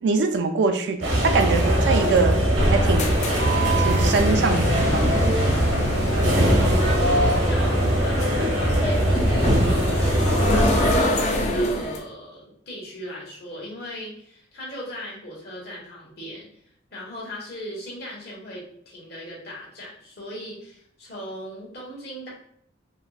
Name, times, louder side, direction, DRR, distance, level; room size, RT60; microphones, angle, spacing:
voice 1, 0.0-2.4 2.7-3.1 3.8-5.3, right 4 dB, 60° right, 7 dB, 0.3 m, -23 dB
sound 1, 1.0-11.0, equal, 80° right, 0.8 m, -21 dB
sound 2, 2.7-12.0, equal, 35° left, 0.4 m, -26 dB
voice 2, 6.8-16.5 16.9-22.3, equal, 55° left, -4 dB, 1.2 m, -38 dB
4.2 x 2.0 x 2.4 m, 0.68 s
head